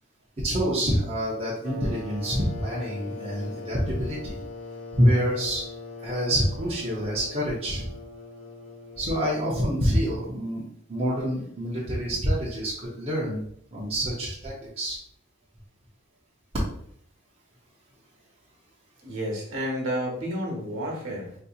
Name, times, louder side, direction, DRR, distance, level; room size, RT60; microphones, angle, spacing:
voice 1, 0.4-4.4 4.9-5.6 6.0-7.9 9.0-13.4 13.7-15.0, equal, 25° right, -6 dB, 0.7 m, -26 dB
sound 1, 1.6-10.0, left 2 dB, 85° left, 0.9 m, -41 dB
voice 2, 19.0-21.3, equal, 60° right, -1 dB, 1.2 m, -31 dB
4.2 x 2.7 x 2.4 m, 0.67 s
head